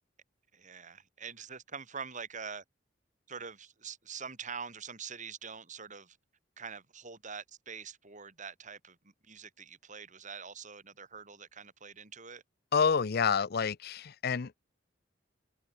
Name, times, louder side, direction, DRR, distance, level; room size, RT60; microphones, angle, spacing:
voice 1, 0.5-2.6 3.3-6.2 6.6-12.4, right 6 dB, 45° right, 5.6 m, -45 dB
voice 2, 12.7-14.6, left 6 dB, 55° left, 0.6 m, -28 dB
head